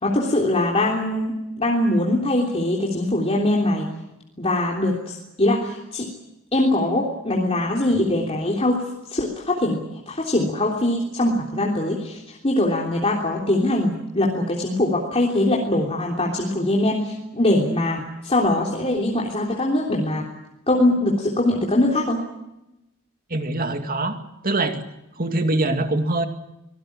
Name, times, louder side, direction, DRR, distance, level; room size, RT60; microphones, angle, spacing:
voice 1, 0.0-3.9 4.4-6.1 6.5-8.8 9.1-9.8 10.1-20.2 20.7-22.2, left 1 dB, 30° left, -2 dB, 3.4 m, -22 dB
voice 2, 23.3-24.2 24.4-24.8 25.2-26.3, right 2 dB, 40° right, 6 dB, 2.3 m, -23 dB
25.0 x 19.0 x 8.7 m, 0.92 s
head